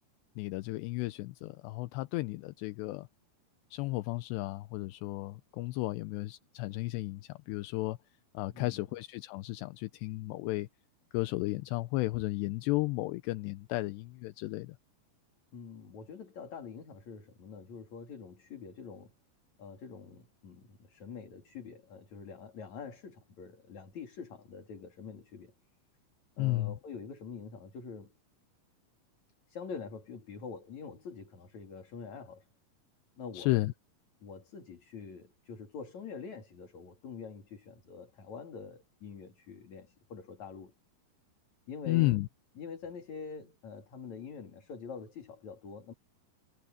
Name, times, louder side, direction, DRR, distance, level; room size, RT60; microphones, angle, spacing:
voice 1, 0.4-3.1 3.7-8.0 8.3-10.7 11.1-14.8 26.4-26.8 33.3-33.7 41.9-42.3, left 19 dB, 80° left, 2.8 m, -33 dB
voice 2, 8.5-8.8 15.5-19.1 19.6-25.5 26.4-28.1 29.5-32.5 33.2-33.6 34.2-40.7 41.7-42.2 42.6-45.9, left 5 dB, 45° left, 3.9 m, -45 dB
omnidirectional pair, 5.1 m